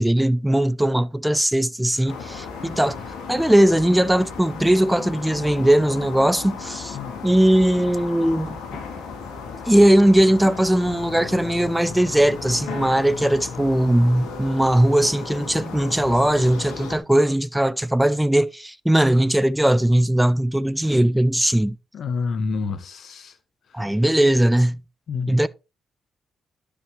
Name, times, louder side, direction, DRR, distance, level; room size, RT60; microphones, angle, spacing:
voice 1, 0.0-3.0 3.3-7.0 7.2-8.6 9.7-21.8 23.7-24.8 25.3-25.5, right 1 dB, 5° right, 0.5 m, -19 dB
sound 1, 2.1-17.0, left 5 dB, 85° left, 1.9 m, -35 dB
voice 2, 21.9-23.4 23.7-23.8 25.1-25.4, left 4 dB, 65° left, 1.0 m, -28 dB
12.0 x 5.1 x 3.2 m
supercardioid pair, 55°, 0 cm